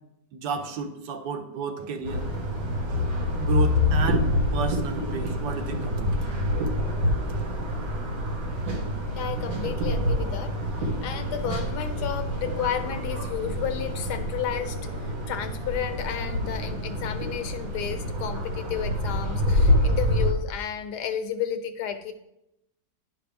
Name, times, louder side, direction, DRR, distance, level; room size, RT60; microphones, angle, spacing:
voice 1, 0.3-2.3 2.9-3.1 3.4-6.3, right 5 dB, 75° right, 6 dB, 1.4 m, -32 dB
sound 1, 2.0-20.3, left 1 dB, 90° right, 2.1 m, -27 dB
voice 2, 9.2-22.1, left 9 dB, 75° left, 8 dB, 1.1 m, -32 dB
10.0 x 5.9 x 3.4 m, 0.85 s
omnidirectional pair, 2.0 m